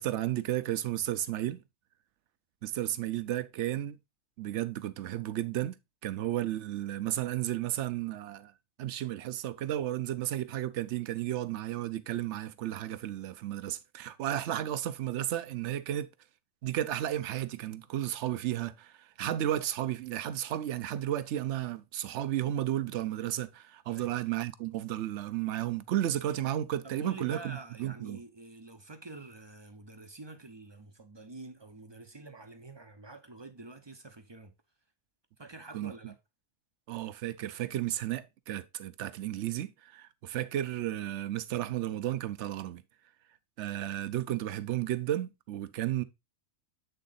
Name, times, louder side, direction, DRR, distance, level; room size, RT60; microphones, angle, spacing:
voice 1, 0.0-1.6 2.6-4.0 4.4-5.8 6.0-8.5 8.8-16.1 16.6-28.2 35.7-36.1 36.9-42.8 43.6-46.0, right 12 dB, 65° right, 0.8 m, -33 dB
voice 2, 26.8-34.5 35.4-36.2, right 2 dB, 35° right, 0.4 m, -47 dB
7.9 x 3.7 x 3.9 m
omnidirectional pair, 1.4 m